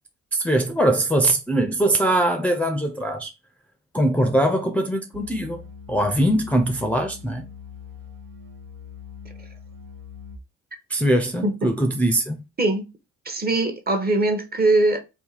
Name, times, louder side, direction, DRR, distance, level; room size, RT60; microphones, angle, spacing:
voice 1, 0.3-3.3 3.9-5.6 5.9-7.4 10.9-12.4, right 1 dB, 5° left, 0.5 m, -21 dB
sound 1, 5.1-10.4, left 5 dB, 80° right, 0.7 m, -42 dB
voice 2, 13.2-15.0, right 2 dB, 30° right, 0.8 m, -21 dB
2.8 x 2.3 x 3.9 m
supercardioid pair, 50°, 32 cm